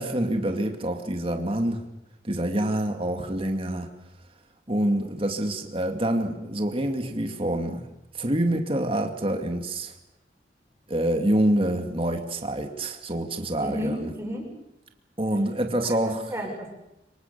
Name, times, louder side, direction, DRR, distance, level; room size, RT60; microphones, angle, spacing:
voice 1, 0.0-1.8 2.2-3.9 4.7-7.8 8.1-9.9 10.9-14.1 15.2-16.4, right 1 dB, 30° right, 4 dB, 2.5 m, -26 dB
voice 2, 13.6-14.5 16.0-16.7, equal, 15° right, 0 dB, 7.1 m, -32 dB
26.0 x 24.0 x 7.0 m, 0.89 s
head